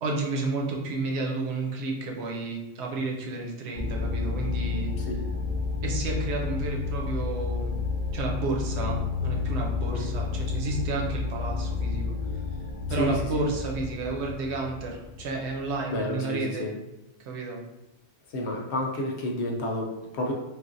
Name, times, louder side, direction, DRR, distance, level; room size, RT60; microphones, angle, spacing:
voice 1, 0.0-4.9 5.8-7.8 8.1-12.1 12.9-16.7 17.2-17.6, right 3 dB, 90° right, 0 dB, 0.9 m, -31 dB
sound 1, 3.8-15.7, left 4 dB, 45° left, 0.6 m, -30 dB
voice 2, 12.9-13.2 15.8-16.7 18.3-20.3, left 1 dB, 80° left, 0 dB, 0.9 m, -30 dB
3.2 x 2.4 x 2.5 m, 0.99 s
omnidirectional pair, 1.1 m